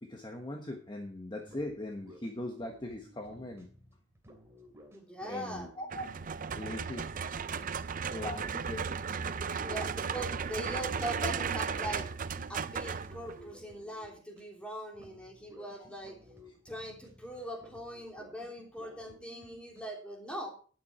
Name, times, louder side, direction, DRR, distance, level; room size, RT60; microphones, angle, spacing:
voice 1, 0.0-3.7 5.3-6.0 6.6-7.1 8.1-9.0, left 1 dB, 25° left, 3 dB, 1.2 m, -40 dB
sound 1, 1.4-14.6 14.9-19.8, equal, 15° right, 2.7 m, -55 dB
voice 2, 4.9-5.7 9.6-12.1 12.5-16.2 16.6-20.5, equal, 5° left, 0 dB, 3.1 m, -41 dB
sound 2, 5.9-13.5, right 6 dB, 40° right, 0.5 m, -35 dB
12.5 x 9.4 x 4.3 m, 0.41 s
head